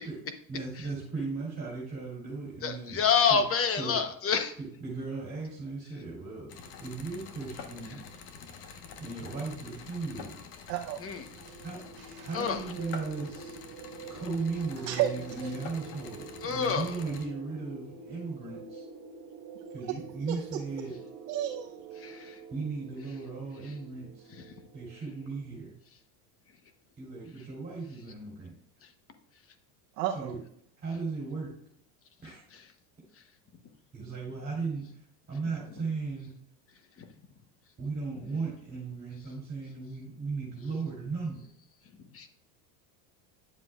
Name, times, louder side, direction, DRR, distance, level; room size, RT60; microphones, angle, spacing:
voice 1, 0.5-3.0 3.3-3.4 3.8-4.0 4.8-6.5 6.8-8.0 9.0-10.3 11.6-11.8 12.2-13.6 14.1-18.8 19.7-21.0 22.5-24.3 24.7-25.7 27.0-28.5 30.1-30.4 30.8-31.5 32.2-32.4 33.9-36.3 37.8-41.4, right 4 dB, 20° right, -4 dB, 3.2 m, -36 dB
voice 2, 2.6-4.5 11.0-11.2 12.3-12.6 16.4-16.9 22.0-22.4 37.0-37.1 42.1-42.3, left 6 dB, 30° left, 8 dB, 1.0 m, -27 dB
sound 1, 6.5-17.3, left 5 dB, 60° left, 1.3 m, -47 dB
voice 3, 10.7-11.1 12.2-12.3 14.8-15.5 20.3-20.4 21.3-21.8 30.0-30.3, right 11 dB, 85° right, 1 dB, 0.9 m, -32 dB
sound 2, 11.1-25.5, right 4 dB, 45° right, 1.3 m, -47 dB
9.8 x 7.4 x 2.4 m, 0.67 s
supercardioid pair, 120°, 47 cm